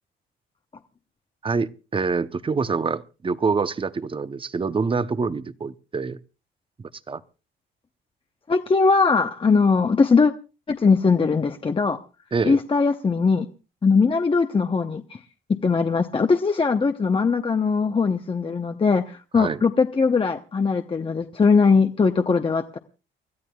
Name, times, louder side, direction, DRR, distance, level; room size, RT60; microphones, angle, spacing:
voice 1, 1.4-6.2 6.8-7.2 12.3-12.6 19.3-19.6, right 4 dB, 25° right, 0.7 m, -26 dB
voice 2, 8.5-10.3 10.7-12.0 12.4-13.5 13.8-15.0 15.6-22.8, left 4 dB, 25° left, 0.8 m, -20 dB
29.5 x 13.0 x 2.3 m
cardioid pair, 90°, 20 cm